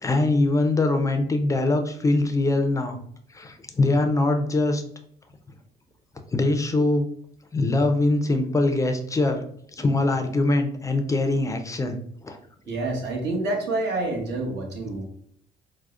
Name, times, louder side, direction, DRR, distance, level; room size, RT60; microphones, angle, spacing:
voice 1, 0.0-3.0 3.3-4.8 6.3-7.1 7.5-9.4 9.7-12.0 12.2-12.4, left 2 dB, 20° left, 6 dB, 0.4 m, -22 dB
voice 2, 12.7-15.0, right 2 dB, 75° right, 1 dB, 0.9 m, -27 dB
4.7 x 2.0 x 2.3 m, 0.64 s
cardioid pair, 115°, 18 cm